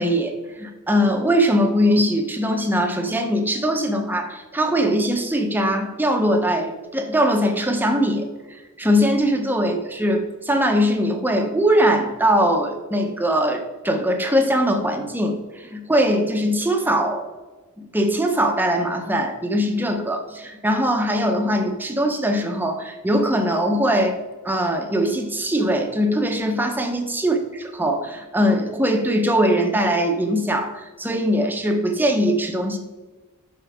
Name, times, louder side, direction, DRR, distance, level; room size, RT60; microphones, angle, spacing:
voice 1, 0.0-8.3 8.8-17.3 17.8-24.2 24.4-32.8, equal, 10° right, 3 dB, 0.8 m, -21 dB
11.5 x 4.6 x 3.6 m, 1.2 s
head